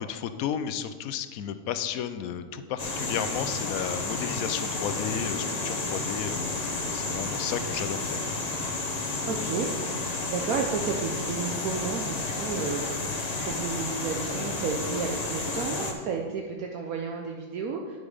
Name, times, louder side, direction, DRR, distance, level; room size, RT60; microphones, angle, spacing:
voice 1, 0.0-8.2, left 8 dB, 75° left, 10 dB, 1.0 m, -33 dB
sound 1, 2.8-15.9, left 3 dB, 35° left, 0.8 m, -31 dB
voice 2, 9.3-18.0, right 5 dB, 75° right, 2 dB, 1.1 m, -32 dB
9.4 x 5.1 x 4.9 m, 1.5 s
omnidirectional pair, 1.6 m